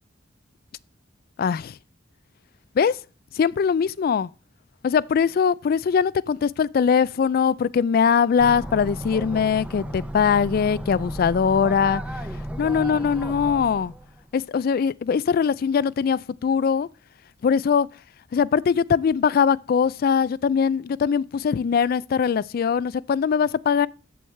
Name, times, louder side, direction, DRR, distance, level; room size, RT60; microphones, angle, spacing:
voice 1, 1.4-1.8 2.8-3.0 3.3-4.3 4.8-12.0 12.6-13.9 14.3-16.9 17.4-17.9 18.3-23.9, left 6 dB, 50° left, 0.3 m, -21 dB
sound 1, 8.4-14.2, equal, 5° right, 0.6 m, -34 dB
7.9 x 7.6 x 3.3 m
head